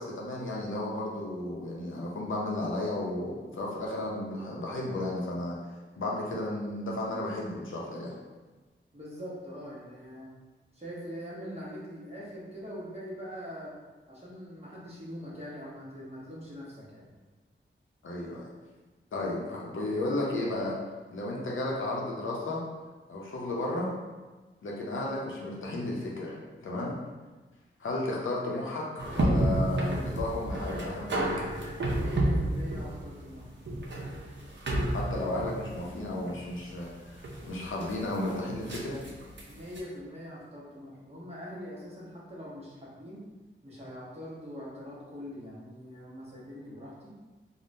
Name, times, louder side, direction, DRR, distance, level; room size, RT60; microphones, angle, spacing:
voice 1, 0.0-5.6 6.0-8.1 18.0-18.5 19.1-20.8 21.1-22.6 23.1-23.9 24.6-27.0 27.8-31.5 34.9-39.0, left 1 dB, 75° left, -3 dB, 0.6 m, -33 dB
voice 2, 8.9-10.3 10.7-13.7 14.1-17.1 27.8-28.1 31.8-33.5 39.4-43.2 43.6-47.1, equal, 30° right, -6 dB, 0.9 m, -43 dB
sound 1, 29.0-39.8, right 1 dB, 65° right, 0.6 m, -31 dB
3.5 x 2.1 x 2.6 m, 1.3 s
wide cardioid pair, 100°, 21 cm